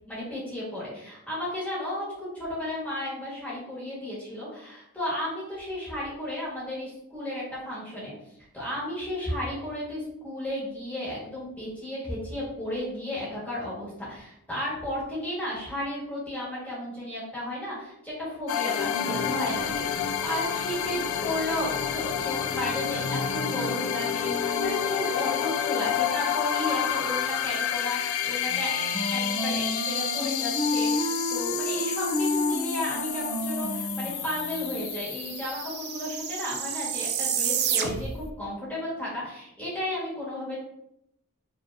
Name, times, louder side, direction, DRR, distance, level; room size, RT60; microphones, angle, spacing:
voice 1, 0.1-8.1 8.5-40.6, left 1 dB, 5° left, -8 dB, 1.6 m, -34 dB
sound 1, 18.5-36.9, left 8 dB, 65° left, 0.4 m, -29 dB
Wind instrument woodwind instrument, 28.5-34.7, left 1 dB, 50° left, 0.8 m, -30 dB
sound 2, 33.8-33.9 34.1-38.3, right 7 dB, 45° right, 0.4 m, -31 dB
5.0 x 3.1 x 2.7 m, 0.79 s
head